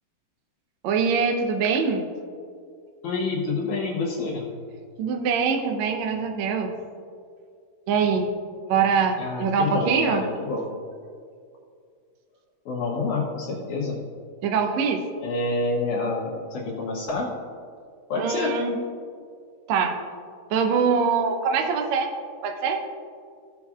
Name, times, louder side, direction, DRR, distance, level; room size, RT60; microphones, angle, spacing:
voice 1, 0.8-2.0 5.0-6.7 7.9-8.3 8.7-10.2 14.4-15.0 18.2-18.8 19.7-20.0 20.5-22.1 22.4-22.8, right 5 dB, 85° right, 3 dB, 1.5 m, -23 dB
voice 2, 3.0-4.5 9.2-10.7 12.7-14.0 15.2-17.3 18.1-18.5, left 3 dB, 70° left, -3 dB, 2.0 m, -28 dB
16.0 x 6.9 x 2.4 m, 2.2 s
omnidirectional pair, 4.2 m